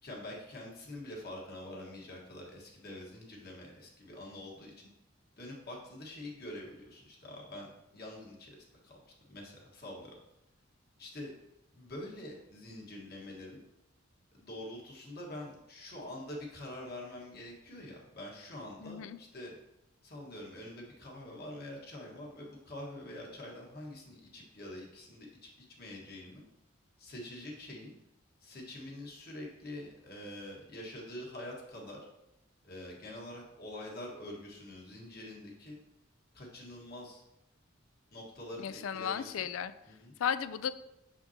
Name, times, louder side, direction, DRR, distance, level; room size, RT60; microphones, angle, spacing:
voice 1, 0.0-4.9 5.4-9.0 9.3-10.1 11.0-11.3 11.7-13.6 14.3-19.6 20.0-26.4 27.0-27.9 28.4-32.0 32.6-35.8 36.3-37.2 38.1-39.5 39.9-40.1, left 1 dB, 50° left, -2 dB, 1.5 m, -45 dB
voice 2, 18.8-19.2 38.6-39.7 40.2-40.7, left 8 dB, 75° left, 14 dB, 0.3 m, -34 dB
6.6 x 5.8 x 2.8 m, 0.89 s
head